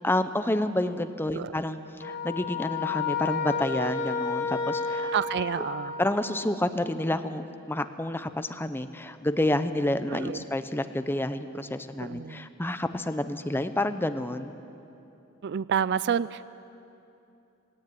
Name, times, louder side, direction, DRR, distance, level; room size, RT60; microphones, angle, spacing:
voice 1, 0.0-5.1 6.0-14.5, left 1 dB, 10° left, 10 dB, 0.7 m, -29 dB
sound 1, 2.0-6.4, left 4 dB, 60° left, 2.7 m, -31 dB
voice 2, 5.1-6.0 10.1-10.4 12.0-12.5 15.4-16.4, right 8 dB, 55° right, 18 dB, 0.4 m, -29 dB
18.5 x 17.5 x 9.3 m, 2.8 s
head